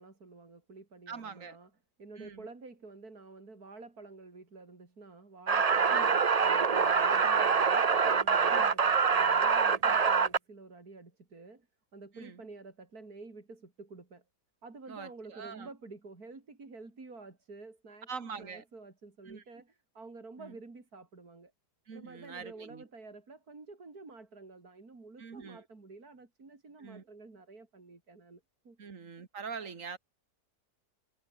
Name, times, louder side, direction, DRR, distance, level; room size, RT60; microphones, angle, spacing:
voice 1, 0.0-1.7 2.0-6.1 6.4-11.7 11.9-14.2 14.6-18.1 18.4-21.5 21.9-28.8, right 3 dB, 70° right, 4.5 m, -50 dB
voice 2, 1.1-1.6 2.2-2.5 5.9-6.2 8.5-8.8 9.8-10.0 12.1-12.5 14.9-15.7 18.1-18.6 19.3-19.4 20.4-20.6 21.9-22.8 25.2-25.6 26.8-27.0 28.8-30.0, right 5 dB, 55° right, 2.3 m, -44 dB
sound 1, 5.5-10.4, right 5 dB, 35° right, 0.7 m, -25 dB
omnidirectional pair, 1.7 m